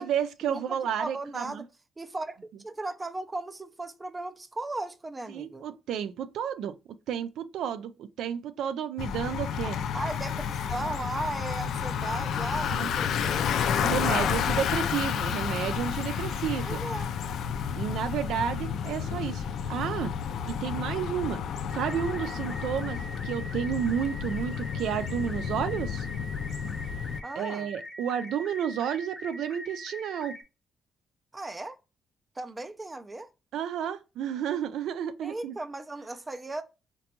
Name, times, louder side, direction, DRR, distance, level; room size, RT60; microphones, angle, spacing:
voice 1, 0.0-1.6 5.3-6.8 7.1-9.8 12.7-12.9 13.8-16.8 17.7-20.1 20.4-21.4 21.7-23.0 23.2-26.1 27.4-30.3 33.5-35.6, right 9 dB, 90° right, 0.3 m, -31 dB
voice 2, 1.0-1.6 2.0-2.4 2.6-5.6 9.9-13.5 14.0-14.3 16.6-17.1 27.2-27.7 31.3-31.8 32.4-33.3 35.2-36.6, right 2 dB, 15° right, 0.3 m, -36 dB
Bicycle, 9.0-27.2, left 7 dB, 70° left, 0.3 m, -31 dB
sound 1, 21.7-30.4, left 1 dB, 10° left, 0.7 m, -42 dB
3.8 x 2.2 x 2.8 m
cardioid pair, 155°, 0 cm